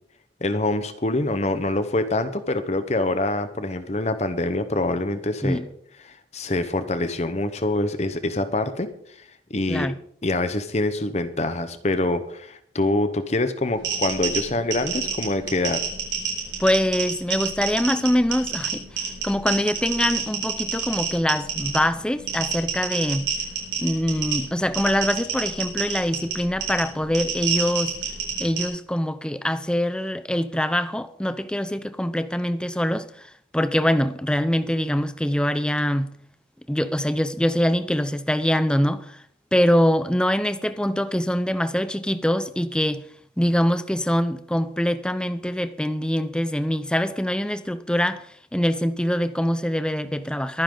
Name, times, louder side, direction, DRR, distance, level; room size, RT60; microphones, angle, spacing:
voice 1, 0.4-5.6 6.0-8.9 9.5-9.9 10.2-15.8, left 2 dB, 35° left, 1.0 m, -25 dB
sound 1, 13.8-28.6, right 7 dB, 85° right, 6.1 m, -29 dB
voice 2, 16.6-23.3 23.8-28.0 28.4-36.1 36.7-39.2 39.5-43.1 43.4-48.3 48.5-50.6, equal, 5° left, 0.6 m, -24 dB
23.0 x 10.0 x 3.9 m
head